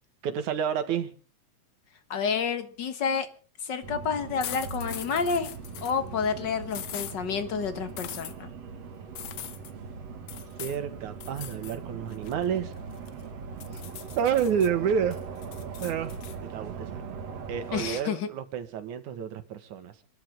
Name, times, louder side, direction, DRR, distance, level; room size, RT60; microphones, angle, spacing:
voice 1, 0.2-1.1 10.6-12.7 13.7-13.8 14.2-15.3 15.8-16.2 16.5-16.9 17.5-19.9, right 8 dB, 85° right, 9 dB, 3.1 m, -29 dB
voice 2, 2.1-3.3 3.6-5.5 5.8-8.5 17.7-18.3, left 6 dB, 45° left, 9 dB, 1.8 m, -29 dB
sound 1, 3.8-17.9, right 5 dB, 60° right, 2.9 m, -40 dB
sound 2, 4.4-6.0 6.7-7.2 8.0-8.3 9.2-9.7 10.3-10.8 11.2-11.8 12.1-13.2 13.6-14.7 15.1-16.4, left 11 dB, 65° left, 1.3 m, -41 dB
27.0 x 12.5 x 3.7 m, 0.38 s
omnidirectional pair, 3.4 m